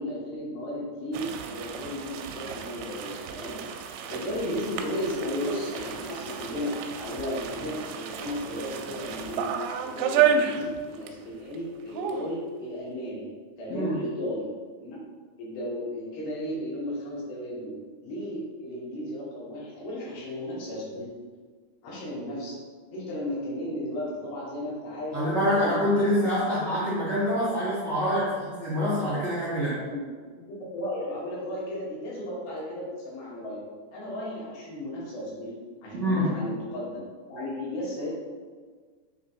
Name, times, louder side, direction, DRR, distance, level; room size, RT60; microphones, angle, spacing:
voice 1, 0.0-3.6 4.1-9.5 9.8-13.3 13.6-14.5 14.8-15.0 15.4-17.8 18.0-21.1 21.8-22.6 22.9-26.2 29.8-30.1 30.3-33.6 33.9-35.5 35.8-37.0 37.3-38.1, left 1 dB, 65° left, -7 dB, 3.6 m, -34 dB
sound 1, 1.1-11.2 11.5-11.6 11.9-12.3, right 7 dB, 85° right, 2.9 m, -31 dB
voice 2, 25.1-29.8 35.9-36.4, equal, 65° right, -10 dB, 1.0 m, -26 dB
7.4 x 3.2 x 4.4 m, 1.5 s
omnidirectional pair, 5.2 m